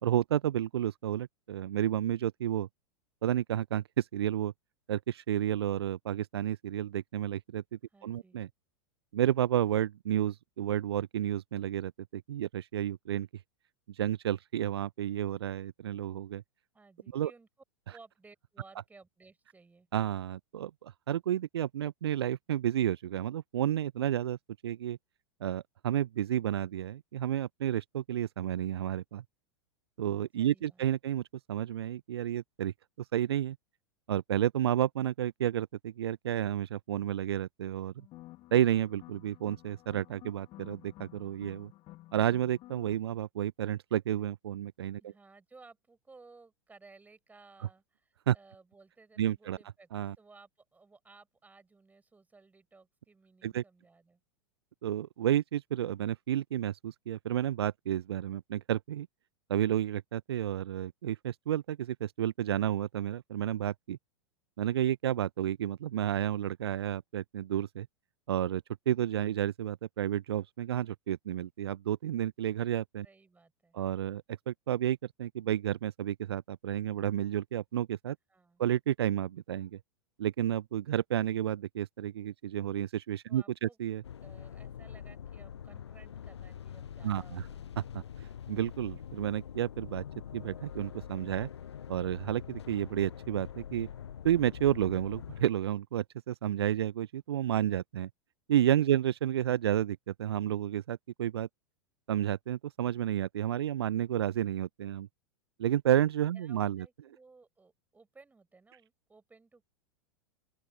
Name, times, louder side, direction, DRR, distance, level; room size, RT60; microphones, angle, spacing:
voice 1, 0.0-2.7 3.2-4.5 4.9-8.5 9.1-13.3 13.9-16.4 17.1-17.3 19.9-24.4 24.6-25.0 25.4-29.2 30.0-31.2 31.5-33.6 34.1-37.9 38.5-41.7 42.1-45.1 48.3-48.4 49.2-49.6 49.9-50.2 53.4-53.6 54.8-59.1 59.5-64.0 64.6-67.9 68.3-73.1 73.7-78.2 78.6-79.8 80.2-84.0 87.0-87.4 87.8-90.0 90.3-91.5 91.9-93.9 94.2-98.1 98.5-101.5 102.1-105.1 105.6-106.9, right 11 dB, 60° right, 0.8 m, -31 dB
voice 2, 7.9-8.4 16.7-17.5 17.9-19.9 30.4-30.8 45.0-49.9 50.2-54.2 73.0-73.8 78.3-78.6 83.3-83.8 84.2-87.7 98.9-99.0 106.3-109.6, right 3 dB, 10° right, 7.3 m, -58 dB
sound 1, 38.0-43.0, left 17 dB, 35° left, 2.4 m, -52 dB
sound 2, 84.0-95.4, left 8 dB, 70° left, 0.6 m, -44 dB
open air
figure-of-eight pair, 90°, 15 cm